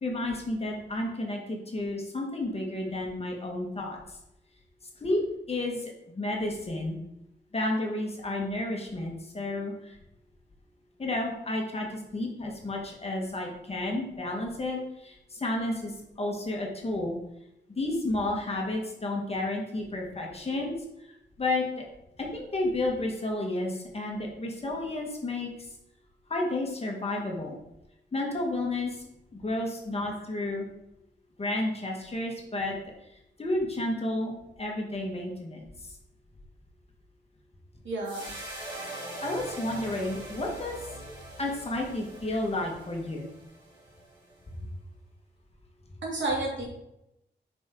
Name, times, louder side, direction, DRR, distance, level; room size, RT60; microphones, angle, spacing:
voice 1, 0.0-4.2 5.0-5.2 5.5-7.0 7.5-10.0 11.0-17.2 17.7-20.8 21.4-21.8 22.2-25.5 26.3-27.6 28.1-29.0 29.3-30.7 31.4-32.7 33.4-34.3 34.6-35.9 39.2-40.7 41.4-43.4 44.6-44.7, left 2 dB, 30° left, 0 dB, 1.7 m, -31 dB
voice 2, 37.8-38.3 46.0-46.6, right 2 dB, 75° right, -3 dB, 2.8 m, -30 dB
sound 1, 38.0-44.4, right 2 dB, 25° right, 2.7 m, -42 dB
9.2 x 5.3 x 3.8 m, 0.86 s
wide cardioid pair, 150°, 19 cm